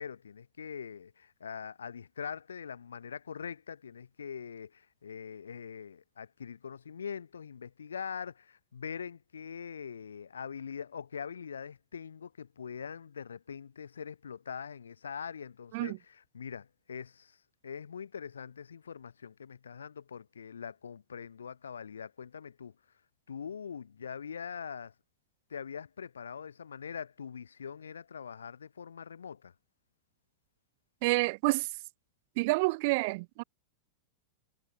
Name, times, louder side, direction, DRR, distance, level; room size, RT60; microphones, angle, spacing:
voice 1, 0.0-17.4 17.6-22.7 23.3-24.9 25.5-29.5, left 7 dB, 70° left, 7.3 m, -43 dB
voice 2, 31.0-31.7 32.4-33.4, right 26 dB, 50° right, 1.0 m, -28 dB
figure-of-eight pair, 90°, 0 cm